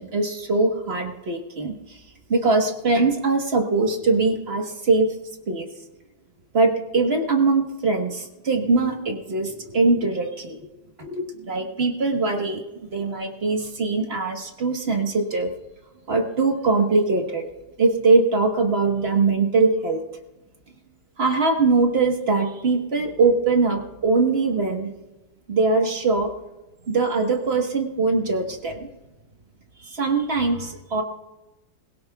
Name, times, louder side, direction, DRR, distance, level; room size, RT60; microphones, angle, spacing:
voice 1, 0.0-1.7 2.3-5.1 5.5-5.7 6.5-10.6 11.0-15.5 16.1-17.5 17.8-20.0 21.2-24.9 25.5-26.3 26.9-28.9 29.8-31.0, right 3 dB, 35° right, 3 dB, 1.5 m, -22 dB
21.0 x 17.5 x 2.4 m, 1.0 s
omnidirectional pair, 2.0 m